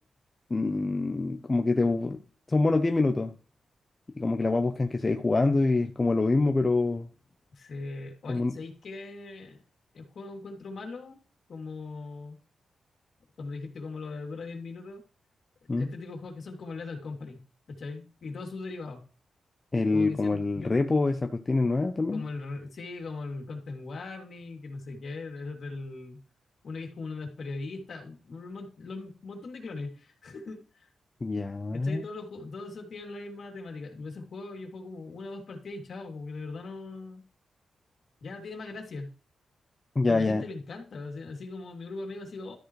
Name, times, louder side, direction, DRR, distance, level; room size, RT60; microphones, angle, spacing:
voice 1, 0.5-2.2 2.5-3.3 4.1-7.1 8.3-8.5 15.7-15.9 19.7-22.3 31.2-32.0 40.0-40.4, left 3 dB, 25° left, 0.8 m, -25 dB
voice 2, 7.5-9.6 9.9-11.2 11.5-12.4 13.4-15.0 15.7-17.4 17.7-19.0 19.9-20.8 22.1-26.2 26.6-30.9 31.7-37.2 38.2-39.1 40.1-42.6, left 3 dB, 60° left, 2.9 m, -39 dB
13.0 x 7.5 x 3.2 m
wide cardioid pair, 120°, 0 cm